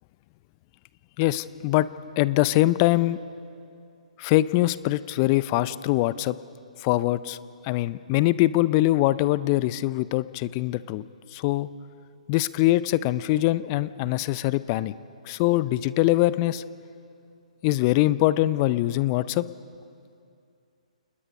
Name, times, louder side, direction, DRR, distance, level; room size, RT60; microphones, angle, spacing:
voice 1, 1.2-1.9 2.2-3.2 4.2-6.4 6.8-7.4 7.6-11.0 11.3-11.7 12.3-14.9 15.3-16.6 17.6-19.4, left 17 dB, 30° left, 17 dB, 0.5 m, -23 dB
28.5 x 20.0 x 5.4 m, 2.5 s
figure-of-eight pair, 125°, 4 cm